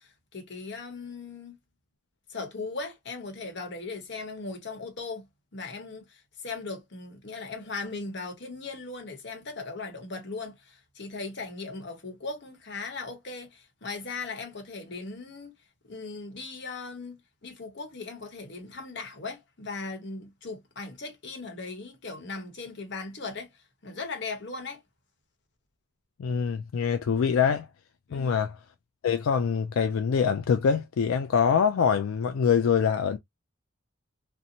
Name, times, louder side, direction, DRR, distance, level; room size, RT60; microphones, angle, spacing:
voice 1, 0.0-1.6 2.3-5.3 5.5-15.5 15.8-24.8 28.1-28.4, left 3 dB, 60° left, 1.0 m, -38 dB
voice 2, 26.2-27.7 28.1-28.5 29.0-33.2, left 6 dB, 90° left, 0.4 m, -24 dB
2.6 x 2.1 x 2.8 m
head